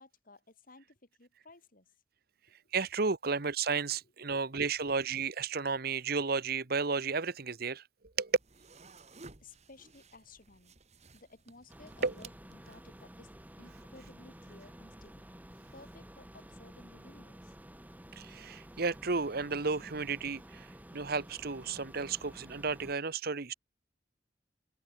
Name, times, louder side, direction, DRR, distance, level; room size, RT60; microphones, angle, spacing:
voice 1, 0.0-1.9 9.4-10.7 11.1-13.3 13.6-15.2 15.7-17.6, left 2 dB, 50° left, 3.5 m, -56 dB
voice 2, 2.7-7.8 8.2-8.4 12.0-12.1 18.2-20.7 20.9-23.5, right 4 dB, 55° right, 1.1 m, -32 dB
sound 1, 8.3-13.1, right 3 dB, 40° right, 2.3 m, -55 dB
sound 2, 11.7-23.0, equal, 10° right, 5.3 m, -52 dB
head